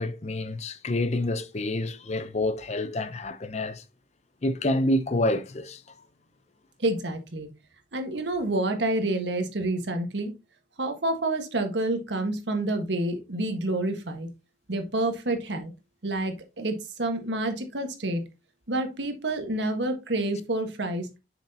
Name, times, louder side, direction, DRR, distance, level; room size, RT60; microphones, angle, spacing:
voice 1, 0.0-3.8 4.4-5.8, left 1 dB, 40° left, 0.7 m, -28 dB
voice 2, 6.8-7.5 7.9-10.3 10.8-14.3 14.7-15.7 16.0-18.2 18.7-21.1, right 2 dB, 80° right, 1.5 m, -28 dB
7.3 x 6.1 x 2.8 m
head